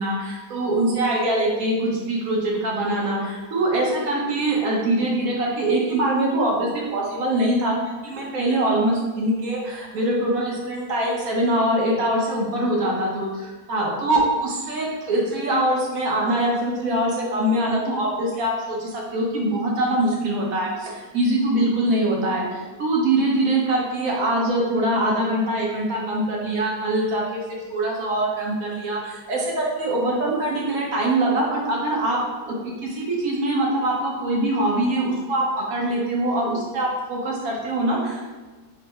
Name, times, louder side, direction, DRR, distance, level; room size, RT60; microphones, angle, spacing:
voice 1, 0.0-7.8 8.0-32.2 32.4-38.3, right 1 dB, 60° right, -3 dB, 1.3 m, -23 dB
4.6 x 2.1 x 4.4 m, 1.3 s
omnidirectional pair, 1.8 m